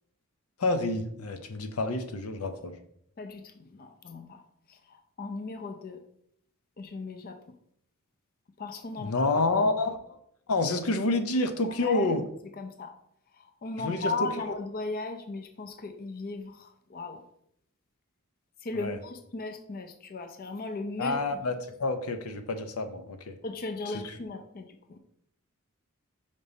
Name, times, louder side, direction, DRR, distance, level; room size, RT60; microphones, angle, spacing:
voice 1, 0.6-2.7 9.0-10.2 10.5-12.2 13.8-14.6 18.7-19.0 21.0-21.5 21.8-23.3, left 2 dB, 85° left, 8 dB, 0.7 m, -28 dB
voice 2, 3.2-4.4 4.7-6.0 6.8-7.4 8.6-9.3 11.8-12.2 12.6-12.9 13.3-17.2 18.6-21.4 23.4-25.0, left 3 dB, 45° left, 6 dB, 0.6 m, -37 dB
5.3 x 5.3 x 4.0 m, 0.72 s
head